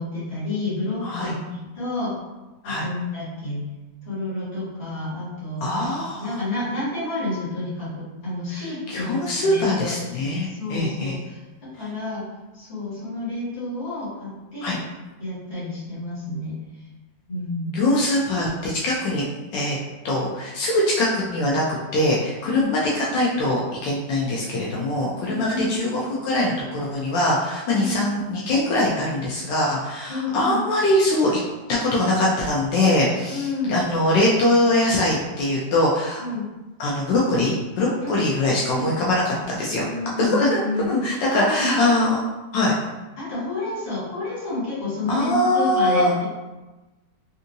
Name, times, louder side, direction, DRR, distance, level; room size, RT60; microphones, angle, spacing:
voice 1, 0.0-2.2 2.6-3.7 4.1-5.9 6.2-11.4 11.8-12.2 12.5-14.8 15.2-16.6 17.3-17.8 22.4-22.7 25.2-25.8 27.7-28.0 30.1-30.6 33.3-33.8 36.2-36.5 38.0-38.3 38.7-38.9 39.8-41.9 43.2-46.2, left 2 dB, 35° left, -11 dB, 1.8 m, -29 dB
voice 2, 1.0-1.3 2.6-2.9 5.6-6.4 8.9-11.2 14.6-14.8 17.7-19.2 19.5-19.8 20.0-21.6 21.9-31.4 31.7-36.2 36.8-39.9 40.2-40.6 40.9-42.2 42.5-42.7 45.1-46.1, left 1 dB, 80° left, -4 dB, 1.3 m, -22 dB
3.5 x 2.7 x 2.6 m, 1.1 s
omnidirectional pair, 1.9 m